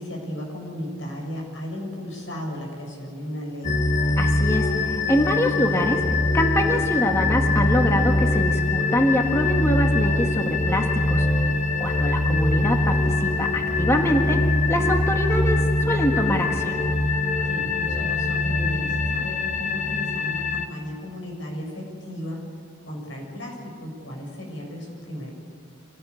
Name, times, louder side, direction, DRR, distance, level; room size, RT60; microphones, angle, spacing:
voice 1, 0.0-3.8 17.4-22.4 22.9-25.3, equal, 90° left, -1 dB, 7.2 m, -35 dB
sound 1, 3.6-20.7, left 2 dB, 40° left, 1.2 m, -23 dB
voice 2, 4.2-6.0 6.3-11.3 11.8-16.7, equal, 15° left, 2 dB, 1.6 m, -24 dB
25.5 x 17.5 x 8.5 m, 2.1 s
head